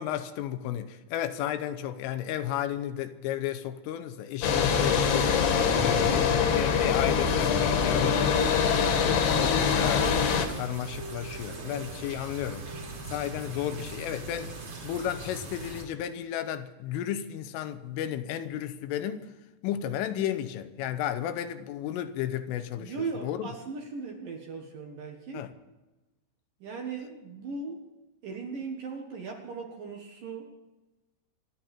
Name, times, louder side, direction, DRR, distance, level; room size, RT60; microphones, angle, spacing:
voice 1, 0.0-5.3 5.7-10.1 10.5-12.6 13.0-14.5 14.8-19.3 19.6-23.5 25.3-25.5, left 11 dB, 80° left, 3.4 m, -33 dB
sound 1, 4.4-10.5, left 6 dB, 65° left, 3.4 m, -24 dB
sound 2, 9.8-15.8, right 2 dB, 40° right, 4.3 m, -40 dB
voice 2, 22.8-25.5 26.6-27.9 28.2-30.5, right 4 dB, 60° right, 2.6 m, -38 dB
27.0 x 11.0 x 4.4 m
omnidirectional pair, 5.8 m